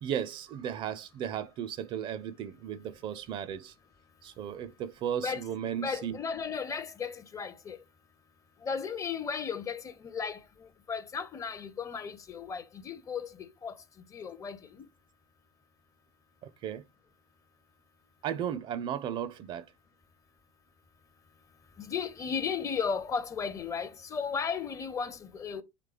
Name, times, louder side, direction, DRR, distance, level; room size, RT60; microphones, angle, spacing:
voice 1, 0.0-3.7 4.2-6.2 16.4-16.8 18.2-19.6, right 9 dB, 35° right, 0.4 m, -35 dB
voice 2, 5.8-7.8 8.6-13.7 14.1-14.9 21.8-25.6, left 6 dB, 20° left, 0.5 m, -35 dB
4.9 x 3.2 x 3.3 m
figure-of-eight pair, 75°, 15 cm